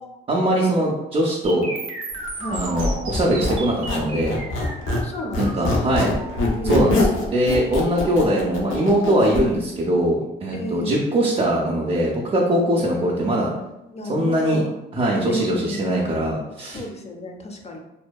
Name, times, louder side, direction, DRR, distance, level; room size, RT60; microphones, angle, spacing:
voice 1, 0.3-1.7 2.5-4.4 5.4-6.1 6.6-13.5 14.1-14.6 14.9-16.8, right 1 dB, 30° right, -3 dB, 0.4 m, -21 dB
sound 1, 1.4-9.4, right 2 dB, 90° right, 0.6 m, -35 dB
voice 2, 2.4-2.7 4.8-5.9 6.6-7.2 10.5-11.0 13.9-14.7 15.3-15.9 16.7-17.8, equal, 35° left, 2 dB, 0.4 m, -33 dB
Squeak, 2.5-5.1 5.3-9.4, left 2 dB, 85° left, 0.6 m, -24 dB
2.6 x 2.1 x 2.2 m, 0.96 s
cardioid pair, 90°, 20 cm